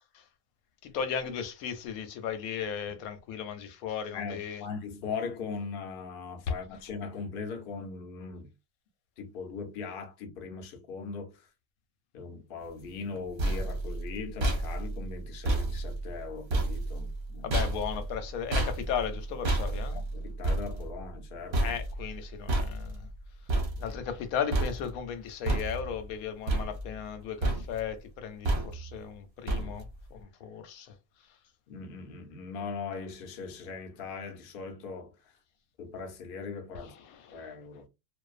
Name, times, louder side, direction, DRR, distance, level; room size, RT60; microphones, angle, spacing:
voice 1, 0.8-4.7 17.4-20.0 21.6-23.1 23.8-30.9 36.7-37.5, left 7 dB, 90° left, 1.0 m, -36 dB
voice 2, 4.1-8.5 9.2-11.5 12.1-17.6 19.9-21.7 31.7-35.1 35.8-36.9 37.3-37.9, left 5 dB, 55° left, 0.7 m, -40 dB
sound 1, 13.0-24.2 24.5-25.1 25.5-26.1 26.5-27.2 27.4-27.9 28.4-29.0 29.5-30.0, right 1 dB, 50° right, 0.7 m, -31 dB
2.6 x 2.1 x 2.4 m
omnidirectional pair, 1.5 m